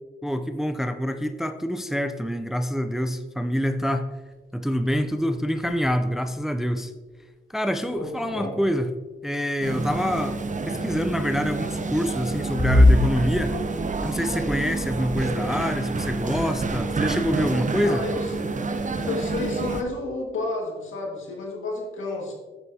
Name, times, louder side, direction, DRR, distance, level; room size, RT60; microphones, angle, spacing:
voice 1, 0.2-4.1 4.5-6.9 7.5-8.9 9.2-10.4 10.7-13.6 14.0-18.0, equal, ahead, 8 dB, 0.5 m, -26 dB
sound 1, 4.3-4.4 4.8-5.1 5.4-7.1 7.9-8.3 8.6-8.9 9.6-10.6 12.0-15.6 15.9-16.9, left 1 dB, 20° left, 2.6 m, -25 dB
voice 2, 7.9-8.5 17.8-18.3 19.0-22.3, left 2 dB, 70° left, 0 dB, 2.0 m, -31 dB
sound 2, 9.6-19.8, right 3 dB, 35° right, 0.8 m, -28 dB
8.0 x 7.7 x 2.8 m, 1.2 s
supercardioid pair, 55°, 21 cm